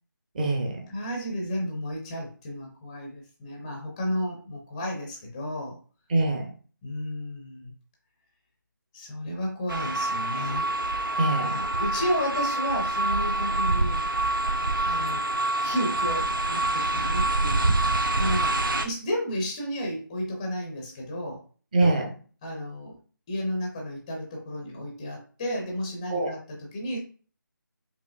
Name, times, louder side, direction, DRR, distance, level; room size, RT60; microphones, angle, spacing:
voice 1, 0.3-0.7 6.1-6.5 11.2-11.8 21.7-22.2 26.1-26.3, right 2 dB, 25° right, 1 dB, 0.8 m, -24 dB
voice 2, 0.9-5.8 6.8-7.7 8.9-10.7 11.3-14.1 14.8-15.2 15.6-17.8 18.2-21.4 22.4-23.0 23.3-27.0, equal, 15° left, 0 dB, 0.6 m, -32 dB
sound 1, 9.7-18.9, right 2 dB, 75° right, 0.6 m, -26 dB
5.1 x 2.6 x 2.4 m, 0.39 s
figure-of-eight pair, 160°, 11 cm